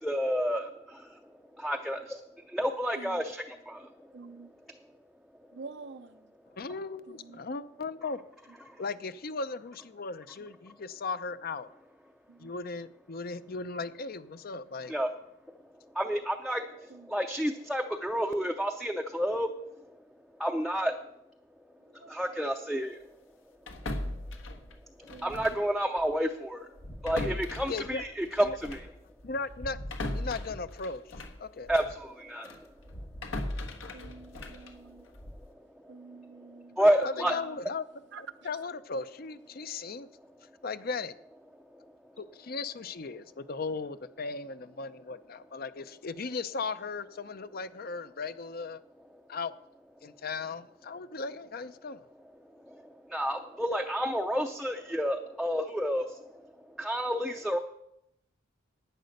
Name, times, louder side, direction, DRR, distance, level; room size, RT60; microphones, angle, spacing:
voice 1, 0.0-1.2 1.5-4.1 8.7-8.8 14.9-15.1 15.9-20.0 20.4-21.0 22.0-23.0 25.0-26.7 27.0-28.9 31.7-32.7 34.5-34.6 34.8-34.9 35.8-35.9 36.2-36.3 36.8-37.3 41.7-41.8 52.6-57.6, equal, ahead, 0.5 m, -30 dB
voice 2, 4.1-4.6 5.5-6.3 7.1-7.4 12.3-12.5 16.9-17.2 21.9-22.2 24.0-24.7 25.1-25.5 33.9-35.1 35.9-36.8 37.4-37.6 38.1-38.5, right 4 dB, 60° right, 0.6 m, -48 dB
voice 3, 6.6-8.2 8.8-11.7 12.4-15.0 27.7-28.0 28.4-28.6 29.2-29.8 30.1-31.7 37.0-37.8 38.2-40.1 40.6-41.1 42.2-48.8 49.3-49.5 50.0-52.0, left 4 dB, 50° left, 0.6 m, -37 dB
sound 1, 23.7-25.7 26.0-26.2 26.8-32.0 32.4-35.5, left 1 dB, 80° left, 1.5 m, -39 dB
11.0 x 9.2 x 6.5 m
head